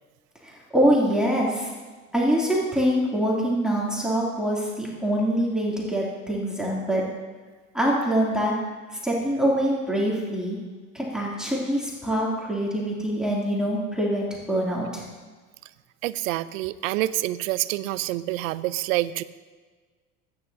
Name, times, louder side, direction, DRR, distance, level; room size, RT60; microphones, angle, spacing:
voice 1, 0.4-1.7 2.1-7.0 7.7-8.5 9.0-10.6 10.9-15.0, equal, ahead, -5 dB, 2.9 m, -24 dB
voice 2, 16.0-19.2, right 16 dB, 80° right, 16 dB, 0.7 m, -27 dB
20.0 x 9.9 x 2.8 m, 1.4 s
supercardioid pair, 90°, 39 cm